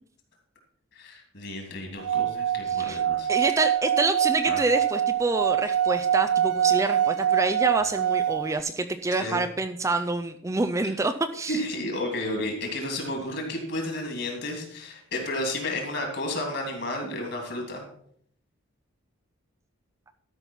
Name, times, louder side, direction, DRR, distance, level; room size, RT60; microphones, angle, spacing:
voice 1, 0.9-3.4 4.5-4.6 9.2-9.4 11.5-17.8, left 1 dB, 50° left, 2 dB, 2.9 m, -32 dB
Singing / Glass, 2.0-8.6, right 10 dB, 90° right, 0.4 m, -25 dB
voice 2, 2.7-3.0 3.3-11.6, right 2 dB, 15° right, 8 dB, 0.3 m, -27 dB
12.5 x 5.6 x 5.5 m, 0.65 s
head